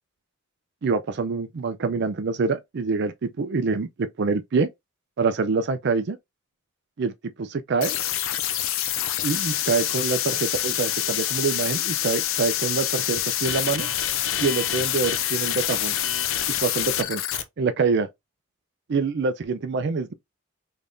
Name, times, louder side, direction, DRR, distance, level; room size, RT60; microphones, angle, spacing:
voice 1, 0.8-4.7 5.2-6.2 7.0-7.1 7.4-8.0 9.2-13.9 14.4-16.0 16.6-18.1 18.9-20.1, right 4 dB, 55° right, 0.4 m, -25 dB
sound 1, 7.8-17.4, left 11 dB, 70° left, 0.5 m, -26 dB
3.4 x 3.3 x 2.6 m
head